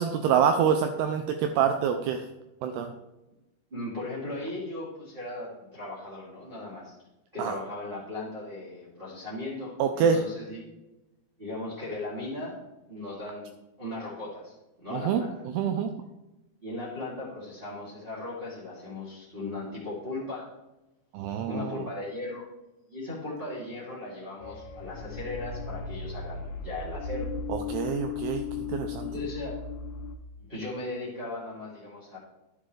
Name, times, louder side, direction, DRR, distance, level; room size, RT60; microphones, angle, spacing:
voice 1, 0.0-2.3 2.6-2.9 7.4-7.6 9.8-10.2 14.9-15.2 15.5-15.9 21.1-21.9 27.5-28.4 28.7-29.1, right 7 dB, 85° right, 6 dB, 2.4 m, -26 dB
voice 2, 3.7-6.9 7.3-10.7 11.4-12.6 12.9-13.5 13.8-15.3 16.6-20.5 21.4-22.5 22.9-27.3 29.0-29.6 30.4-32.2, left 2 dB, 20° right, -9 dB, 1.5 m, -37 dB
sound 1, 24.4-30.2, left 5 dB, 80° left, 2.4 m, -36 dB
11.5 x 8.2 x 3.2 m, 0.99 s
omnidirectional pair, 5.3 m